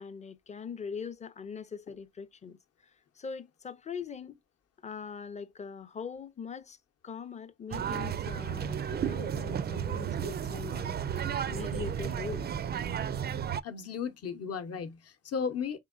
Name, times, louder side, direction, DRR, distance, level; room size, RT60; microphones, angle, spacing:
voice 1, 0.0-4.4 4.8-6.8 7.0-12.5, left 6 dB, 25° left, 0.5 m, -42 dB
sound 1, 7.7-13.6, right 8 dB, 35° right, 0.4 m, -33 dB
voice 2, 13.6-15.8, left 6 dB, 55° left, 0.8 m, -35 dB
3.6 x 3.6 x 2.4 m
cardioid pair, 90°, 30 cm